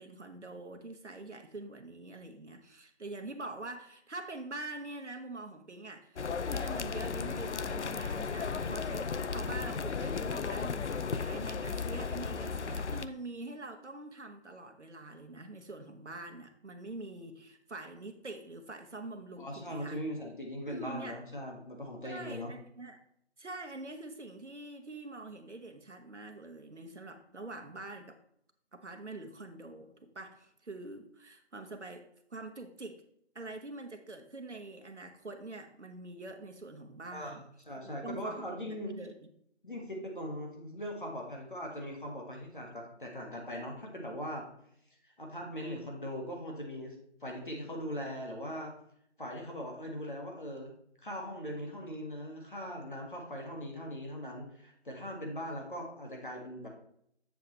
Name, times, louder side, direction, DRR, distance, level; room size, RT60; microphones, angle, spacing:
voice 1, 0.0-20.0 20.7-21.2 22.0-23.0 23.4-28.2 28.7-32.0 32.3-33.0 33.3-37.5 37.8-39.1, right 2 dB, 80° right, 5 dB, 1.2 m, -45 dB
sound 1, 6.2-13.1, left 5 dB, 80° left, 0.5 m, -35 dB
voice 2, 19.4-22.5 37.1-37.4 37.7-38.9 39.6-44.5 45.0-47.0 47.2-48.7 49.2-50.7 51.0-56.7, equal, 45° left, 0 dB, 1.8 m, -40 dB
7.6 x 6.9 x 3.1 m, 0.70 s
figure-of-eight pair, 175°, 34 cm